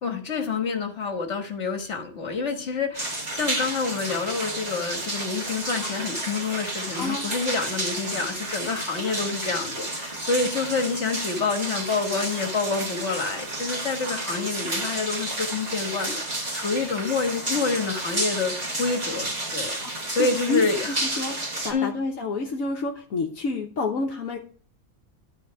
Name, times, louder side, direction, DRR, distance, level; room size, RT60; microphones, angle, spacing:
voice 1, 0.0-19.7 20.1-20.9 21.7-21.9, left 4 dB, 55° left, 5 dB, 1.8 m, -28 dB
sound 1, 2.9-21.7, right 2 dB, 30° right, 1.9 m, -31 dB
voice 2, 19.8-21.4 21.6-24.4, left 3 dB, 70° left, 0 dB, 1.4 m, -29 dB
12.0 x 4.4 x 5.7 m, 0.43 s
omnidirectional pair, 1.5 m